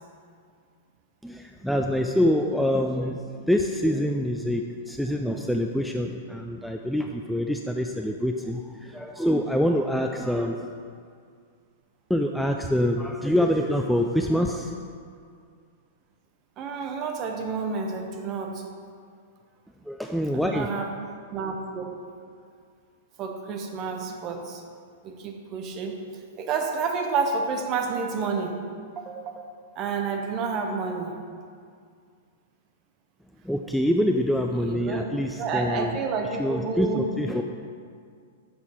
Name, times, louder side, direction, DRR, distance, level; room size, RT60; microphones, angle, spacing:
voice 1, 1.2-10.7 12.1-14.8 19.9-20.7 33.4-36.0 36.4-37.4, equal, ahead, 2 dB, 0.3 m, -25 dB
voice 2, 16.6-18.6 20.3-20.9 21.3-22.0 23.2-24.6 25.0-26.0 26.4-28.6 29.0-29.3 29.8-31.2 34.6-35.1 35.4-37.0, right 5 dB, 35° right, 4 dB, 0.8 m, -29 dB
6.9 x 5.4 x 4.3 m, 2.2 s
figure-of-eight pair, 100°, 0 cm